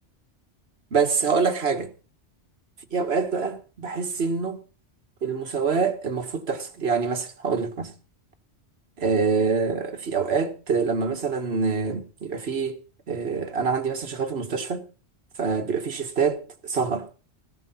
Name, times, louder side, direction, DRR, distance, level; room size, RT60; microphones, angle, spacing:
voice 1, 0.9-1.9 2.9-4.6 5.2-7.9 9.0-12.8 13.1-14.8 15.4-17.1, right 5 dB, 70° right, 1.7 m, -25 dB
15.5 x 15.0 x 4.2 m
omnidirectional pair, 1.1 m